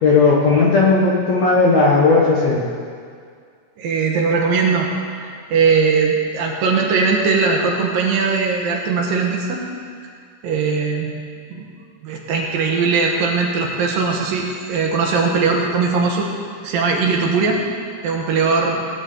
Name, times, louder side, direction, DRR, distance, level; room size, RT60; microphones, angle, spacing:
voice 1, 0.0-2.6, left 3 dB, 60° left, -5 dB, 2.1 m, -15 dB
voice 2, 3.8-4.9 5.1-9.6 10.4-11.1 11.5-11.7 12.0-16.3 16.6-17.6 18.0-18.8, right 4 dB, 70° right, 0 dB, 2.7 m, -19 dB
17.5 x 10.5 x 3.9 m, 2.1 s
omnidirectional pair, 4.5 m